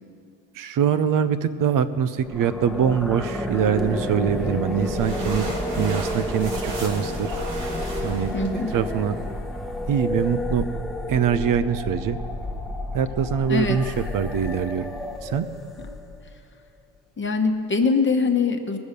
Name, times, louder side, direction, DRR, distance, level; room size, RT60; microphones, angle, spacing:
voice 1, 0.5-7.4 8.0-8.3 8.7-9.2 9.9-10.7 11.1-12.2 12.9-14.9 15.2-15.5, right 8 dB, 55° right, 12 dB, 0.7 m, -23 dB
sound 1, 2.2-16.3, left 1 dB, ahead, 1.1 m, -30 dB
sound 2, 4.3-9.4, right 2 dB, 85° right, 3.3 m, -37 dB
voice 2, 8.3-8.7 13.5-13.8 17.2-18.8, left 4 dB, 30° left, 4 dB, 1.2 m, -22 dB
19.0 x 7.1 x 6.6 m, 2.4 s
supercardioid pair, 75°, 40 cm